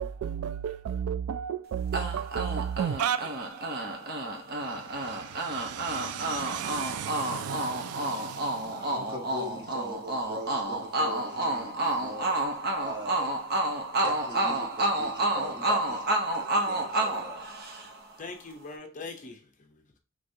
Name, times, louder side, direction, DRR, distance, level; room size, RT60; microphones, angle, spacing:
voice 1, 0.0-4.0 4.6-8.9, right 8 dB, 85° right, 0.3 m, -34 dB
sound 1, 1.9-18.1, right 2 dB, 45° right, 0.8 m, -30 dB
voice 2, 6.3-6.8 7.3-7.9 8.6-12.4 12.8-13.4 13.9-17.4, equal, 20° right, 1.3 m, -42 dB
voice 3, 18.1-20.0, left 3 dB, 35° left, 0.6 m, -42 dB
5.2 x 3.4 x 2.7 m
head